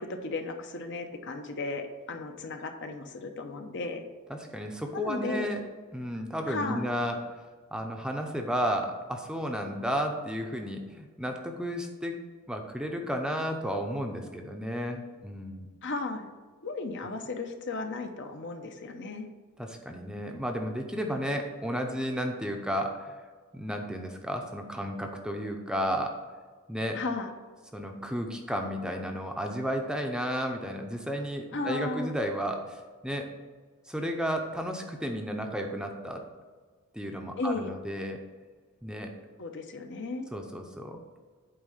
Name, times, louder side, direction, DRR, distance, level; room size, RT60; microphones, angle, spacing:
voice 1, 0.0-4.0 4.9-5.5 6.5-6.9 15.8-16.3 16.6-19.3 26.9-27.3 31.5-32.1 37.4-37.7 39.4-40.3, left 3 dB, 55° left, 5 dB, 0.8 m, -35 dB
voice 2, 4.3-5.6 5.9-7.4 7.7-12.1 12.5-15.7 19.6-23.3 23.5-26.2 26.7-27.0 27.7-33.3 33.9-36.3 36.9-38.2 38.8-39.2 40.3-41.0, equal, 5° right, 3 dB, 0.7 m, -33 dB
8.9 x 3.7 x 6.5 m, 1.5 s
head